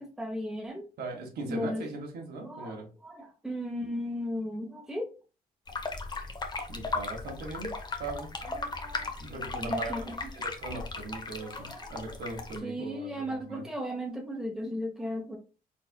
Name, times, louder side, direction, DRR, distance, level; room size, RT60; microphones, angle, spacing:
voice 1, 0.0-0.8 1.5-1.8 2.4-2.7 3.0-5.1 6.8-6.9 8.5-10.2 11.4-11.9 12.6-15.4, equal, 5° right, 1 dB, 1.0 m, -36 dB
voice 2, 1.0-2.9 6.7-7.7 8.0-8.3 9.2-13.6, right 2 dB, 75° right, 1 dB, 1.5 m, -39 dB
sound 1, 5.7-12.6, left 3 dB, 25° left, 0.8 m, -36 dB
4.3 x 4.1 x 2.2 m, 0.34 s
cardioid pair, 105°, 17 cm